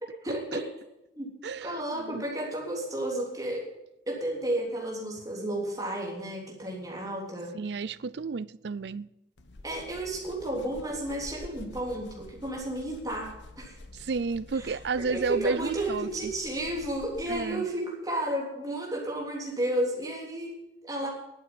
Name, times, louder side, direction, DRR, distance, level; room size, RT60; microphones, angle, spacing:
voice 1, 0.2-0.7 1.1-3.7 4.1-7.6 9.6-13.8 14.5-14.6 15.0-21.1, right 1 dB, 20° right, 3.3 m, -32 dB
voice 2, 1.4-2.2 7.5-9.1 13.9-16.3 17.3-17.7, right 4 dB, 70° right, 0.5 m, -31 dB
sound 1, 9.4-17.7, left 2 dB, 85° left, 1.2 m, -48 dB
11.5 x 8.5 x 9.8 m
head